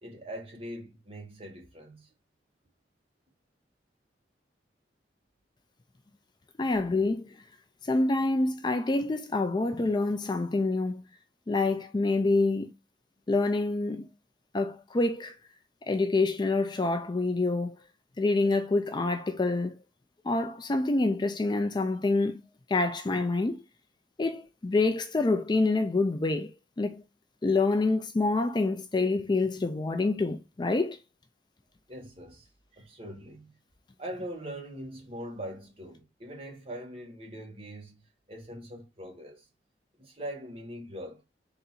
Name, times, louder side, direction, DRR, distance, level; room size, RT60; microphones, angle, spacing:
voice 1, 0.0-2.1 31.9-32.5 32.7-33.5 34.0-38.0 38.3-39.5 40.0-41.2, equal, 35° right, 1.5 m, -42 dB
voice 2, 6.6-7.3 7.8-11.0 11.5-12.7 13.3-14.1 14.5-15.3 15.9-17.8 18.2-19.7 20.2-22.4 22.7-23.6 24.2-27.0 27.4-31.0, left 3 dB, 25° left, 0.4 m, -27 dB
3.9 x 2.7 x 4.0 m
head